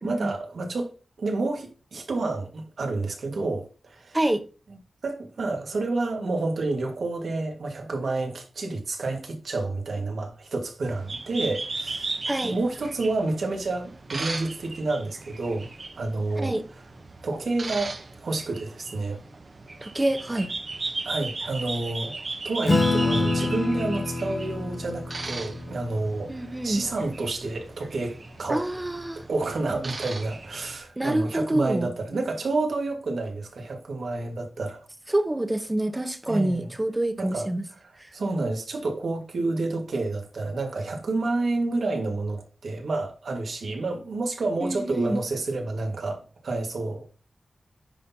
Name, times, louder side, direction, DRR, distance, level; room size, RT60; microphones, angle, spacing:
voice 1, 0.0-0.9 1.2-4.2 5.0-15.7 16.0-16.5 17.2-19.2 21.0-28.6 29.3-34.9 36.3-36.7 37.2-37.5 37.8-47.1, right 2 dB, 80° right, 1.6 m, -29 dB
sound 1, 10.8-30.8, right 3 dB, 45° right, 0.8 m, -37 dB
voice 2, 12.3-12.6 16.4-16.6 19.8-20.5 26.3-26.8 28.5-29.2 31.0-32.2 35.1-37.6 38.0-38.1 44.6-45.2, right 1 dB, 15° right, 0.8 m, -26 dB
Acoustic guitar / Strum, 22.6-27.5, left 2 dB, 35° left, 1.6 m, -28 dB
9.8 x 4.1 x 2.8 m
wide cardioid pair, 115°, 0 cm